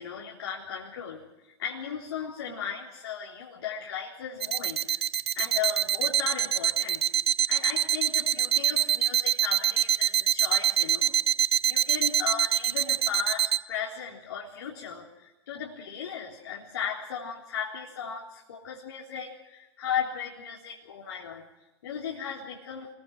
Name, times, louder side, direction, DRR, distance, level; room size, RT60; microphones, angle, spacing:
voice 1, 0.0-5.0 5.3-7.0 7.5-11.1 11.4-21.4 21.8-22.9, left 7 dB, 65° left, -3 dB, 3.8 m, -36 dB
sound 1, 4.4-13.6, right 10 dB, 70° right, 0.9 m, -24 dB
29.0 x 23.0 x 4.9 m, 1.0 s
figure-of-eight pair, 100°, 14 cm